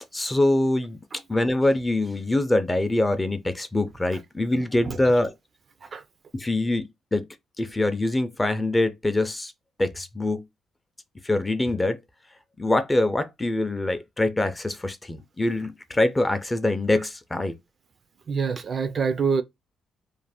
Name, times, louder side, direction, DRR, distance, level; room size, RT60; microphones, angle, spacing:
voice 1, 0.1-1.0 1.3-5.3 6.3-7.3 7.6-9.5 9.8-10.4 11.2-12.0 12.6-17.5, left 2 dB, 15° left, 0.4 m, -24 dB
voice 2, 18.3-19.4, right 5 dB, 45° right, 0.3 m, -25 dB
2.5 x 2.1 x 3.3 m
cardioid pair, 90°, 0 cm